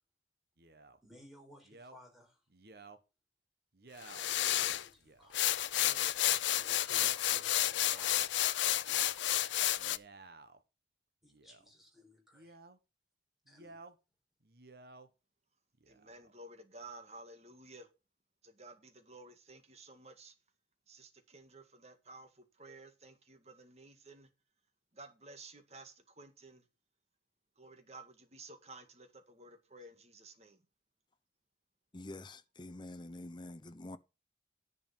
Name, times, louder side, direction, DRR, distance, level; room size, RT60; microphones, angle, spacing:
Male speech man speaking, 0.6-1.0 1.6-2.0 2.5-3.0 3.7-4.3 5.0-5.3 5.8-6.1 6.6-7.1 7.6-8.3 9.7-10.6 11.3-11.7 12.3-12.8 13.5-14.0 14.4-15.1 15.7-16.3, right 3 dB, 55° right, 1.2 m, -55 dB
voice 1, 1.0-2.4 4.5-5.4 6.5-8.5 8.9-9.7 11.2-12.6 13.5-13.8, left 1 dB, ahead, 4.5 m, -59 dB
sound 1, 4.0-4.8 5.3-10.0, left 13 dB, 85° left, 0.6 m, -31 dB
voice 2, 15.9-17.9 18.4-20.3 20.9-24.3 24.9-26.6 27.6-30.6, right 2 dB, 35° right, 1.9 m, -54 dB
voice 3, 31.9-34.0, left 2 dB, 25° left, 0.7 m, -47 dB
10.5 x 5.2 x 7.1 m
head